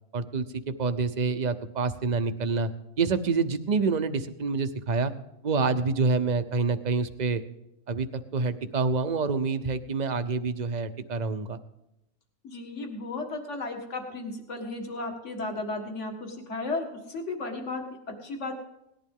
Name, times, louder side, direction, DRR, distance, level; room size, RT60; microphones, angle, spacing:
voice 1, 0.1-2.7 3.0-5.1 5.4-7.4 7.9-8.1 8.3-11.6, right 4 dB, 40° right, 10 dB, 0.7 m, -27 dB
voice 2, 12.4-18.5, left 2 dB, 60° left, 3 dB, 2.1 m, -34 dB
18.5 x 11.5 x 3.7 m, 0.84 s
omnidirectional pair, 1.4 m